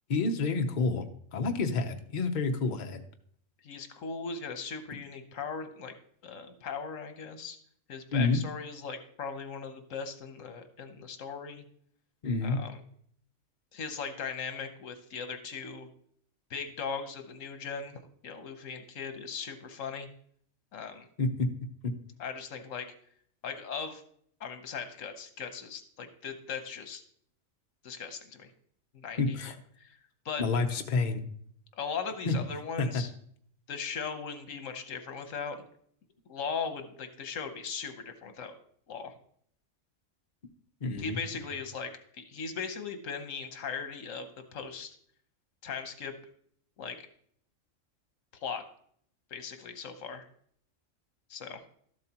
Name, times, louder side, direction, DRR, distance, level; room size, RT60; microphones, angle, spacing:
voice 1, 0.1-1.0 1.3-3.0 8.1-8.4 12.2-12.6 21.2-21.5 21.8-21.9 29.2-29.6 30.4-31.2 32.2-32.4 32.8-33.0 40.8-41.4, left 3 dB, 40° left, 5 dB, 0.8 m, -29 dB
voice 2, 3.6-5.9 6.2-7.6 7.9-11.6 12.4-12.8 13.7-15.9 16.5-20.1 20.7-21.1 22.2-22.9 23.4-24.0 24.4-27.0 27.8-28.5 28.9-29.4 29.8-30.0 30.2-30.4 31.8-33.1 33.7-35.7 36.3-38.5 38.9-39.1 41.0-45.0 45.6-46.1 46.8-47.0 48.4-48.6 49.3-50.3 51.3-51.6, left 5 dB, 80° left, 8 dB, 1.3 m, -38 dB
12.5 x 7.7 x 2.9 m, 0.62 s
omnidirectional pair, 1.3 m